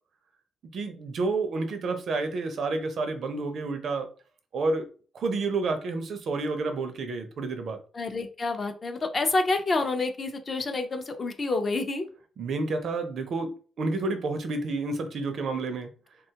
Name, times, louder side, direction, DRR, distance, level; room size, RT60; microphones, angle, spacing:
voice 1, 0.7-4.1 4.5-4.9 5.1-7.8 12.4-15.9, right 3 dB, 55° right, 0.5 m, -30 dB
voice 2, 7.9-12.1, left 3 dB, 30° left, 0.4 m, -28 dB
3.4 x 2.2 x 2.8 m
cardioid pair, 145°, 0 cm